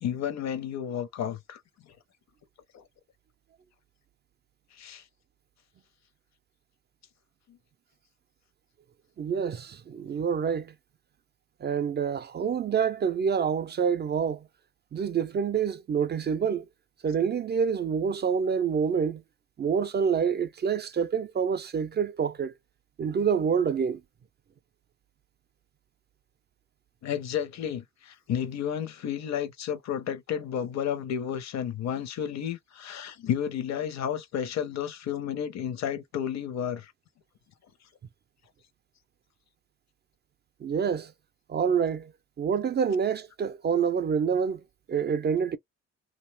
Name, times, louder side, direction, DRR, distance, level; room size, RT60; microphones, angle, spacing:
voice 1, 0.0-1.6 2.7-2.8 4.8-5.0 7.5-7.6 27.0-36.9, left 9 dB, 60° left, 0.7 m, -32 dB
voice 2, 9.2-10.7 11.6-14.5 14.9-16.7 17.0-19.2 19.6-22.5 23.0-24.0 40.6-41.1 41.5-42.1 42.4-44.6 44.9-45.6, right 7 dB, 35° right, 0.4 m, -27 dB
2.5 x 2.2 x 3.2 m
cardioid pair, 90°, 30 cm